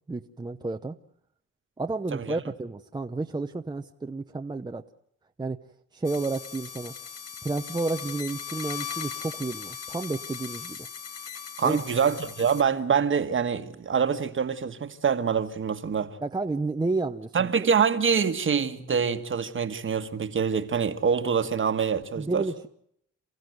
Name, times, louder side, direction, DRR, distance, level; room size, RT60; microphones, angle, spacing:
voice 1, 0.1-1.0 1.8-4.8 5.4-5.6 5.9-6.9 7.4-10.8 11.6-11.8 16.2-17.7 22.2-22.7, right 3 dB, 15° right, 0.8 m, -31 dB
sound 1, 6.0-12.6, left 7 dB, 55° left, 1.9 m, -38 dB
voice 2, 11.6-16.1 17.3-22.4, right 6 dB, 40° right, 1.5 m, -25 dB
28.5 x 15.0 x 7.9 m
cardioid pair, 90°, 30 cm